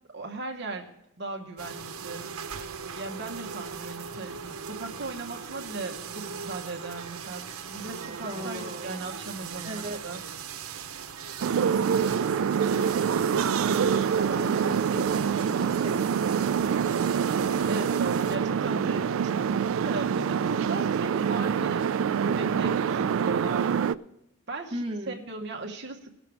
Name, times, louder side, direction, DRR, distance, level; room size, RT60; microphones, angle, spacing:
voice 1, 0.1-0.9 1.2-2.3 3.0-10.2 17.7-21.9 22.2-24.0 24.5-26.1, right 3 dB, 50° right, 2 dB, 1.0 m, -37 dB
sound 1, 1.6-18.4, right 5 dB, 85° right, 0.9 m, -38 dB
voice 2, 8.2-9.0 9.6-10.2 11.5-12.3 12.7-16.5 24.7-25.2, right 1 dB, 25° right, -1 dB, 1.0 m, -38 dB
sound 2, 11.4-24.0, right 7 dB, 65° right, 0.3 m, -26 dB
18.0 x 6.1 x 4.7 m, 0.87 s
head